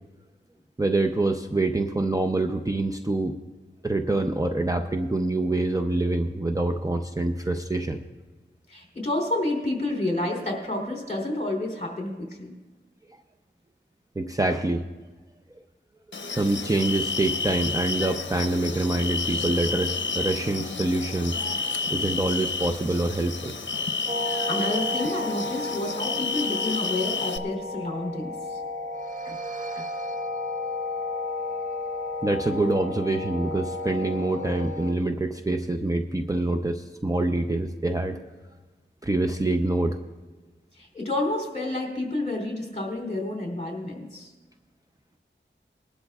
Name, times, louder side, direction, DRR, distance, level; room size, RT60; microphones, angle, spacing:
voice 1, 0.8-3.4 3.8-8.0 14.2-14.8 16.2-21.6 21.9-23.5 29.3-29.4 29.8-29.9 32.2-38.2 39.0-40.0, right 2 dB, 15° right, 5 dB, 0.6 m, -26 dB
voice 2, 8.7-12.5 24.3-28.6 40.8-44.3, left 2 dB, 35° left, 0 dB, 3.1 m, -29 dB
sound 1, 16.1-27.4, left 4 dB, 70° left, 0.7 m, -30 dB
sound 2, 24.1-34.9, left 1 dB, 40° right, 0.8 m, -33 dB
20.5 x 12.0 x 2.4 m, 1.3 s
wide cardioid pair, 80°, 20 cm